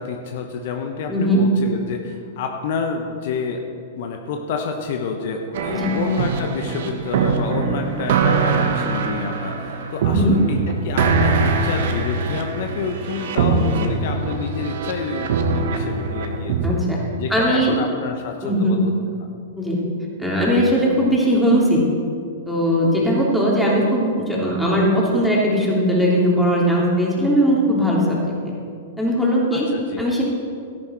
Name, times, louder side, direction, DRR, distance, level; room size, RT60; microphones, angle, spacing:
voice 1, 0.0-3.7 3.9-16.8 17.2-18.9 29.5-30.0, left 5 dB, 55° left, 4 dB, 1.1 m, -29 dB
voice 2, 1.1-1.4 5.7-5.9 10.1-10.3 16.6-17.0 17.3-17.8 18.4-18.8 19.6-19.8 20.2-21.8 22.5-28.5 29.0-29.7 30.0-30.2, equal, ahead, -5 dB, 3.2 m, -19 dB
sound 1, 5.5-16.7, right 4 dB, 60° right, 1.4 m, -22 dB
13.5 x 11.0 x 4.5 m, 2.3 s
figure-of-eight pair, 105°, 0 cm